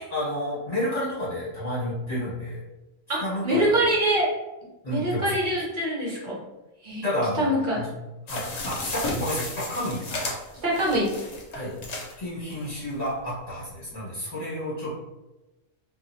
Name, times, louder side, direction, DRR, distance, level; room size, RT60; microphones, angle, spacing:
voice 1, 0.1-2.6 3.2-3.9 4.8-5.2 7.0-7.5 7.7-7.9 8.3-10.1 11.5-11.7 12.2-14.9, equal, 30° left, -9 dB, 1.3 m, -30 dB
voice 2, 3.1-4.3 4.9-6.4 6.8-7.1 7.4-7.8 10.6-11.1, right 1 dB, 45° right, -5 dB, 0.9 m, -24 dB
sound 1, 8.3-12.2 12.7-12.8 13.0-13.1, left 2 dB, 65° left, 0.4 m, -33 dB
2.7 x 2.4 x 2.7 m, 1.0 s
omnidirectional pair, 1.3 m